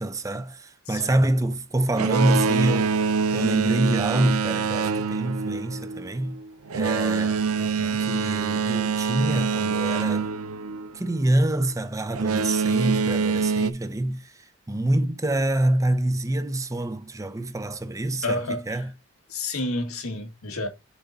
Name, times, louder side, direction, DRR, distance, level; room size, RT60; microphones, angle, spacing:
voice 1, 0.0-2.9 3.3-6.4 6.7-7.4 8.0-10.3 10.9-18.4 18.7-18.9, right 1 dB, 15° right, 0.6 m, -26 dB
voice 2, 0.9-1.3 7.6-8.0 18.2-18.8 19.3-20.7, left 2 dB, 85° left, 1.8 m, -30 dB
Boat Water vehicle, 1.9-11.3 12.1-13.7, right 5 dB, 90° right, 0.6 m, -25 dB
7.2 x 4.0 x 4.0 m
head